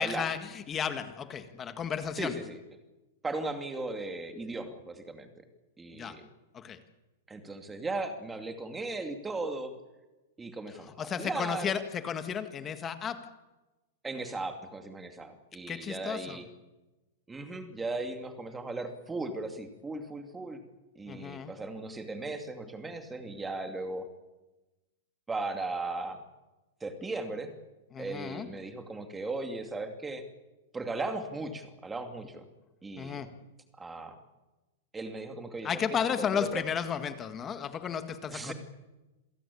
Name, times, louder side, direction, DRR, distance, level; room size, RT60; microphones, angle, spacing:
voice 1, 0.0-2.3 5.9-6.2 6.5-6.8 11.0-13.3 15.7-16.4 21.1-21.5 27.9-28.5 33.0-33.3 35.6-38.5, left 7 dB, 20° left, 9 dB, 1.8 m, -33 dB
voice 2, 2.2-2.6 3.2-5.3 5.8-6.2 7.3-9.7 10.4-11.7 14.0-16.5 17.3-20.6 21.0-24.1 25.3-26.2 26.8-27.5 28.0-30.2 30.7-32.5 32.8-33.2 33.8-34.2 34.9-35.8 36.2-36.6 38.3-38.5, right 2 dB, 10° right, 6 dB, 2.6 m, -37 dB
27.5 x 17.0 x 8.6 m, 1.1 s
supercardioid pair, 160°, 0 cm